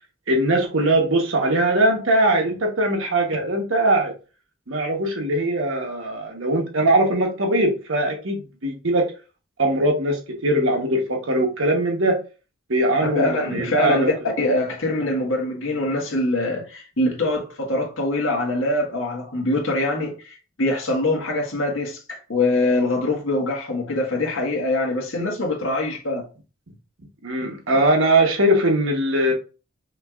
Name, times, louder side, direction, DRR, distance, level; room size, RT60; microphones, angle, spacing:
voice 1, 0.3-4.1 4.7-9.1 9.6-12.2 12.7-14.1 27.2-29.3, right 1 dB, 70° right, 1.2 m, -21 dB
voice 2, 13.1-26.3, left 2 dB, 70° left, 1.6 m, -23 dB
5.7 x 3.0 x 2.5 m
head